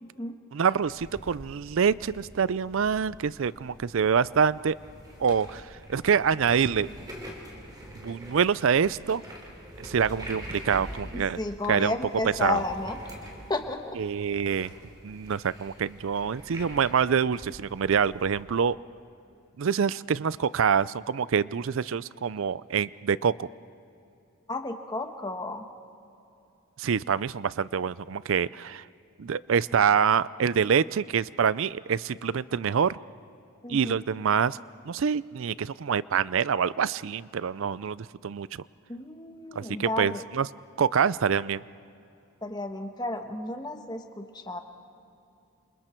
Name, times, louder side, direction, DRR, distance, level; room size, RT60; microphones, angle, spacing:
voice 1, 0.0-0.4 11.1-13.1 13.5-14.0 24.5-25.7 33.6-33.9 38.9-40.2 42.4-44.6, left 2 dB, 20° left, 5 dB, 1.3 m, -33 dB
voice 2, 0.5-4.8 5.2-5.6 5.9-6.9 8.0-9.2 9.8-11.4 11.7-11.9 12.4-12.6 14.0-14.7 15.0-18.8 19.6-23.5 26.8-28.8 29.2-33.0 33.7-34.6 34.9-38.6 39.6-40.5 40.8-41.6, right 6 dB, 65° right, 19 dB, 0.4 m, -26 dB
sound 1, 0.8-18.4, equal, 20° right, 3.4 m, -45 dB
28.5 x 27.5 x 4.5 m, 2.7 s
head